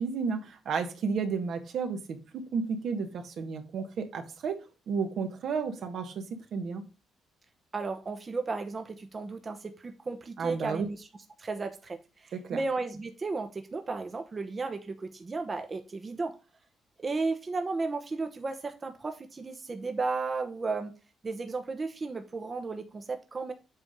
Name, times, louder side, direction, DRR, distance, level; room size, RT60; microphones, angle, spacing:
voice 1, 0.0-6.8 10.4-10.9 12.3-12.6, right 5 dB, 65° right, 1.4 m, -32 dB
voice 2, 7.7-11.1 11.4-16.4 17.0-21.0 21.2-23.5, right 3 dB, 30° right, 0.9 m, -34 dB
8.1 x 3.5 x 5.2 m
cardioid pair, 90°, 0 cm